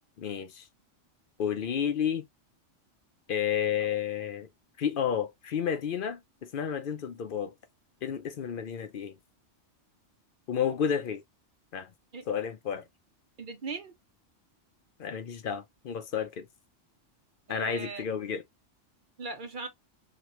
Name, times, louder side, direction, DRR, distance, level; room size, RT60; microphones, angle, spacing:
voice 1, 0.2-0.7 1.4-2.2 3.3-4.5 4.8-7.5 8.0-9.2 10.5-11.2 11.7-11.9 12.3-12.8 15.0-16.5 17.5-18.4, left 8 dB, 55° left, 0.6 m, -31 dB
voice 2, 13.4-13.9 17.5-18.0 19.2-19.7, right 4 dB, 50° right, 0.7 m, -38 dB
3.0 x 2.7 x 2.9 m
omnidirectional pair, 1.3 m